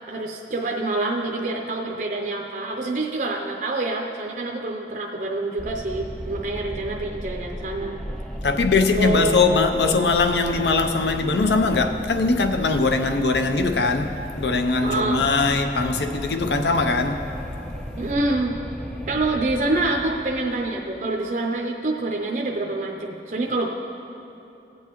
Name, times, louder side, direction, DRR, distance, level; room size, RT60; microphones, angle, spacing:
voice 1, 0.1-8.0 8.9-9.4 14.8-15.2 18.0-18.5 19.1-23.7, right 2 dB, 45° right, 0 dB, 0.5 m, -26 dB
Wind, 5.6-20.9, equal, 5° left, 0.4 m, -35 dB
voice 2, 8.4-17.3, left 3 dB, 70° left, 7 dB, 0.6 m, -21 dB
16.5 x 7.9 x 3.0 m, 2.8 s
head